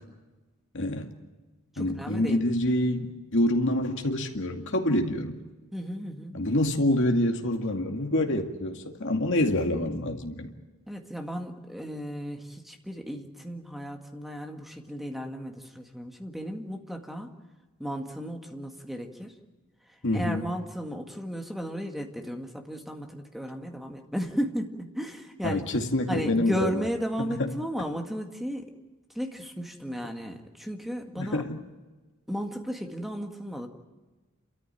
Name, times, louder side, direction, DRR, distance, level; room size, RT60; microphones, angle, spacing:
voice 1, 0.7-1.1 1.8-5.4 6.3-10.5 20.0-20.4 25.4-26.7 27.4-27.5 31.2-31.6, left 1 dB, 60° left, 2.2 m, -26 dB
voice 2, 1.7-2.4 5.7-6.4 10.9-17.3 17.8-19.4 19.8-25.7 26.1-28.7 29.1-31.4 32.3-33.7, equal, ahead, 1.9 m, -34 dB
29.0 x 13.5 x 9.2 m
head